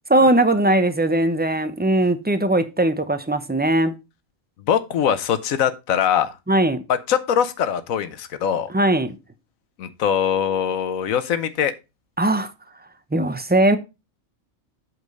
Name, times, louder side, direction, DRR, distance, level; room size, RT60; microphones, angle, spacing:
voice 1, 0.1-3.9 6.5-6.8 8.7-9.2 12.2-12.5 13.1-13.8, right 1 dB, 15° right, 0.4 m, -19 dB
voice 2, 4.7-6.4 6.9-8.7 9.8-11.7, left 8 dB, 85° left, 1.2 m, -22 dB
8.1 x 4.4 x 5.2 m
omnidirectional pair, 1.4 m